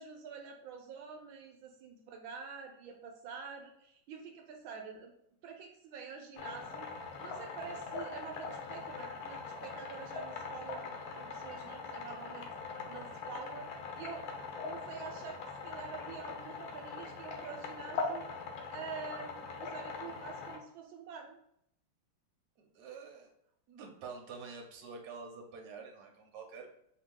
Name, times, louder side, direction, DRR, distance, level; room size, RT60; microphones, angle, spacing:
voice 1, 0.0-5.1 5.4-6.9 7.2-10.9 11.1-12.5 12.9-13.7 13.9-14.2 14.6-15.4 15.6-18.3 18.7-21.4, right 6 dB, 80° right, 3 dB, 1.3 m, -47 dB
sound 1, 6.4-20.6, left 4 dB, 80° left, 1.5 m, -42 dB
voice 2, 22.6-23.3 23.7-26.7, right 4 dB, 60° right, 2 dB, 1.2 m, -47 dB
4.5 x 2.8 x 3.7 m, 0.73 s
omnidirectional pair, 2.2 m